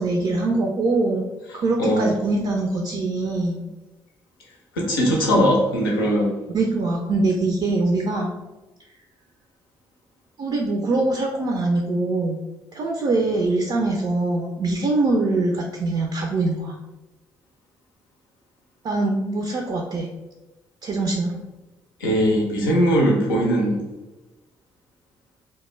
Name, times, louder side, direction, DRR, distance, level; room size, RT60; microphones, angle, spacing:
voice 1, 0.0-3.7 6.5-8.3 10.4-12.4 12.7-16.7 18.8-20.1 20.8-21.4, right 2 dB, 45° right, 1 dB, 0.4 m, -23 dB
voice 2, 1.8-2.1 4.8-6.4 22.0-23.8, equal, 85° left, -2 dB, 0.5 m, -20 dB
2.1 x 2.0 x 3.0 m, 1.1 s
hypercardioid pair, 40°, 11 cm